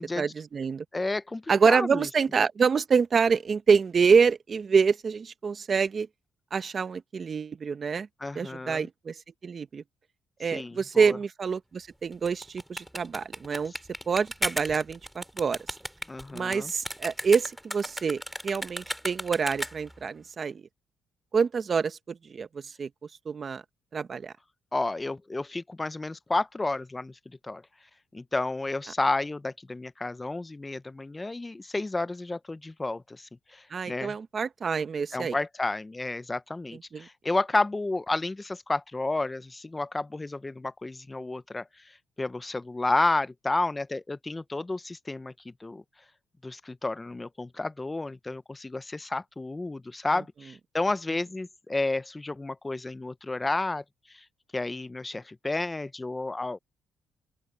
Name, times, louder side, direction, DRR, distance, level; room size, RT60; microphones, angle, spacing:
voice 1, 0.0-0.8 1.5-6.1 6.5-8.1 8.3-9.8 10.4-13.7 14.1-15.6 16.3-20.6 21.3-22.9 23.2-23.6 23.9-24.3 33.7-35.4 36.9-37.1, right 5 dB, 45° right, 1.1 m, -26 dB
voice 2, 0.9-2.1 8.2-8.9 10.5-11.2 16.1-16.7 24.7-27.6 28.1-34.1 35.1-45.3 45.6-45.8 46.4-53.8 54.1-54.2 54.5-56.6, left 2 dB, 20° left, 0.5 m, -31 dB
sound 1, 12.1-20.0, equal, ahead, 3.5 m, -36 dB
open air
cardioid pair, 90°, 0 cm